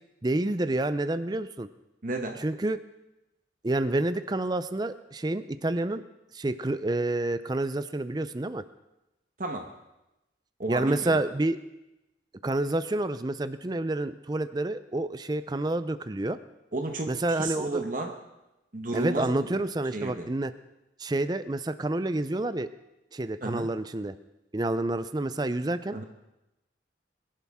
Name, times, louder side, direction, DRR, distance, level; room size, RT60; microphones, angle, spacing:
voice 1, 0.2-1.7 2.4-2.8 3.6-6.0 6.3-8.6 10.7-11.6 12.4-16.4 17.1-17.8 18.9-20.5 21.0-22.7 23.1-24.2 24.5-26.0, right 2 dB, 25° right, 12 dB, 0.5 m, -28 dB
voice 2, 2.0-2.4 9.4-9.7 10.6-11.2 16.7-18.2 18.7-19.5 19.9-20.3 23.4-23.7 25.9-26.0, right 2 dB, 45° right, 4 dB, 1.0 m, -32 dB
22.0 x 11.5 x 3.6 m, 0.95 s
head